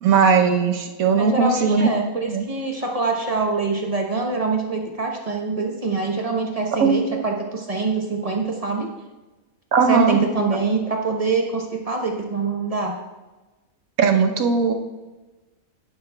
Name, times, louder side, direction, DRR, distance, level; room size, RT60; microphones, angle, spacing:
voice 1, 0.0-1.9 2.2-2.4 6.8-7.2 9.7-10.2 10.5-10.6 14.0-14.7, right 5 dB, 80° right, 4 dB, 1.3 m, -18 dB
voice 2, 1.2-8.9 9.9-12.9, right 4 dB, 30° right, 1 dB, 0.9 m, -24 dB
10.5 x 10.5 x 2.3 m, 1.2 s
omnidirectional pair, 1.5 m